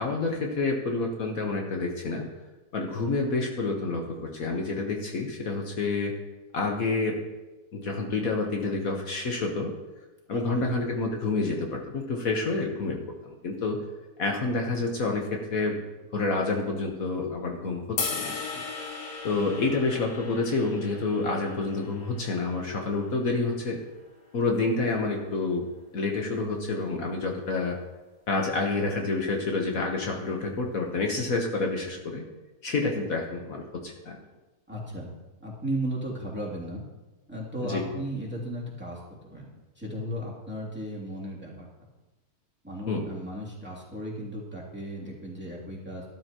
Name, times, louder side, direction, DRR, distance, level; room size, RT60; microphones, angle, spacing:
voice 1, 0.0-2.2 2.7-6.1 6.5-7.2 7.7-9.7 10.3-13.8 14.2-15.8 16.1-18.6 19.2-23.8 24.3-25.6 25.9-27.8 28.3-32.2 32.6-34.2 37.6-37.8 42.9-43.0, left 3 dB, 65° left, 1 dB, 1.5 m, -28 dB
voice 2, 10.3-10.7 34.7-35.1 35.4-36.8 37.3-39.0 39.3-39.5 39.8-41.7 42.6-46.0, right 1 dB, 5° right, -5 dB, 2.6 m, -35 dB
sound 1, 18.0-24.2, left 4 dB, 85° left, 1.9 m, -38 dB
12.5 x 12.5 x 3.0 m, 1.1 s
omnidirectional pair, 1.6 m